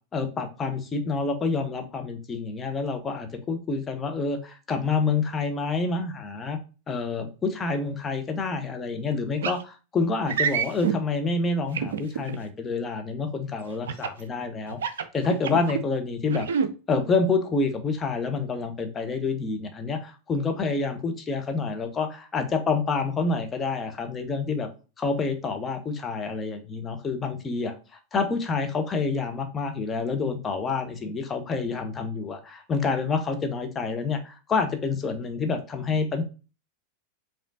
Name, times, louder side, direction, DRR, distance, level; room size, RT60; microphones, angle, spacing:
voice 1, 0.1-6.6 6.9-16.5 16.9-24.7 25.0-27.7 28.1-36.2, left 4 dB, 20° left, 6 dB, 0.8 m, -28 dB
sound 1, 9.4-9.6 10.3-11.0 11.7-12.4 13.9-14.2 14.7-15.8 16.3-16.7, right 7 dB, 60° right, 0.5 m, -27 dB
5.1 x 3.7 x 2.5 m, 0.33 s
figure-of-eight pair, 90°, 0 cm